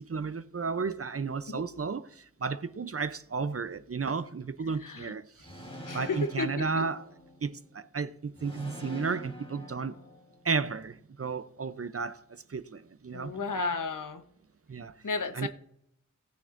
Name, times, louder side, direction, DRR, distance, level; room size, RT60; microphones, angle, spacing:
voice 1, 0.0-5.6 5.9-7.0 7.4-10.0 10.4-13.4 14.7-14.9 15.3-15.5, right 5 dB, 50° right, 0.6 m, -33 dB
sound 1, 5.4-7.6 8.4-10.6, left 1 dB, 20° left, 3.5 m, -45 dB
voice 2, 5.9-6.8 13.1-14.2 15.0-15.5, left 4 dB, 85° left, 1.0 m, -33 dB
19.0 x 6.8 x 2.6 m
wide cardioid pair, 55°, 31 cm